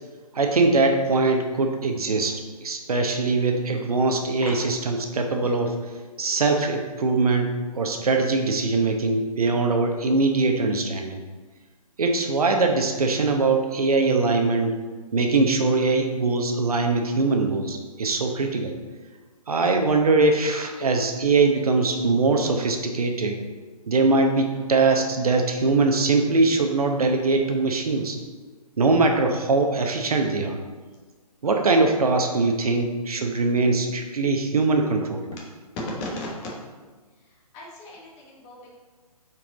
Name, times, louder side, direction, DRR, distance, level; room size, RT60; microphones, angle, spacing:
voice 1, 0.3-5.8 6.2-11.2 12.0-14.7 15.1-18.7 19.5-23.4 23.9-28.2 28.8-30.6 31.4-35.2, right 3 dB, 70° right, 3 dB, 1.0 m, -22 dB
voice 2, 37.5-38.7, left 1 dB, 25° left, -3 dB, 1.5 m, -37 dB
5.9 x 4.7 x 4.0 m, 1.4 s
figure-of-eight pair, 140°, 20 cm